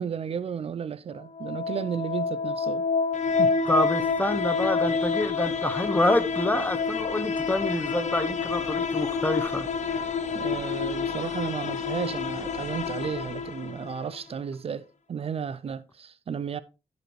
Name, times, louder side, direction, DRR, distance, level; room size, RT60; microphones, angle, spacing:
voice 1, 0.0-2.8 3.4-3.5 10.3-16.6, right 7 dB, 50° right, 0.5 m, -33 dB
sound 1, 1.2-14.2, left 5 dB, 70° left, 1.0 m, -28 dB
voice 2, 3.7-10.0, left 1 dB, 15° left, 0.8 m, -27 dB
14.5 x 5.3 x 3.1 m
wide cardioid pair, 125°, 12 cm